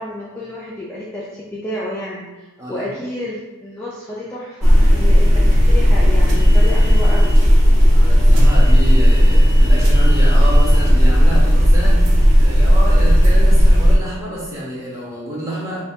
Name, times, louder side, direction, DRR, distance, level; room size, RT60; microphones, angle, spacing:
voice 1, 0.0-7.4, left 1 dB, 10° left, -7 dB, 0.4 m, -30 dB
voice 2, 2.6-2.9 7.9-15.8, equal, 15° right, -7 dB, 0.9 m, -28 dB
sound 1, 4.6-14.0, equal, 85° right, 0.9 m, -12 dB
5.5 x 2.3 x 2.7 m, 1.1 s
head